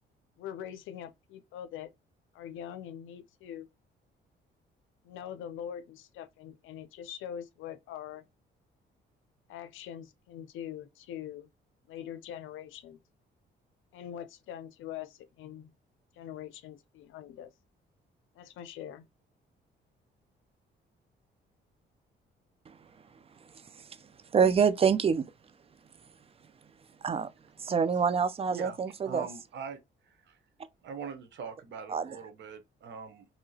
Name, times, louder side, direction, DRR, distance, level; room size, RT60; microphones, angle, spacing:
voice 1, 0.4-1.9 2.3-3.7 5.0-8.2 9.5-11.5 11.9-13.0 13.9-15.7 16.1-17.5 18.4-19.1, left 10 dB, 85° left, 0.5 m, -43 dB
voice 2, 24.3-25.3 27.0-27.3 27.6-29.2 31.9-32.1, right 6 dB, 30° right, 0.4 m, -26 dB
voice 3, 29.0-30.4 30.8-33.3, right 6 dB, 65° right, 0.8 m, -42 dB
2.8 x 2.7 x 2.7 m
cardioid pair, 90°, 20 cm